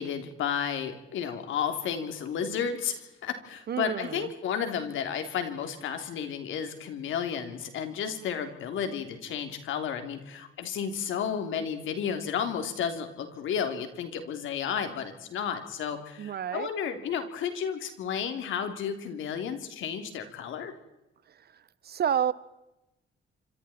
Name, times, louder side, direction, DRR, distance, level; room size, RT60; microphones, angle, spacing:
voice 1, 0.0-20.7, left 7 dB, 80° left, 7 dB, 3.3 m, -32 dB
voice 2, 3.7-4.3 16.2-16.7 21.3-22.3, right 9 dB, 55° right, 18 dB, 1.1 m, -30 dB
26.5 x 26.0 x 4.4 m, 0.95 s
cardioid pair, 90°, 20 cm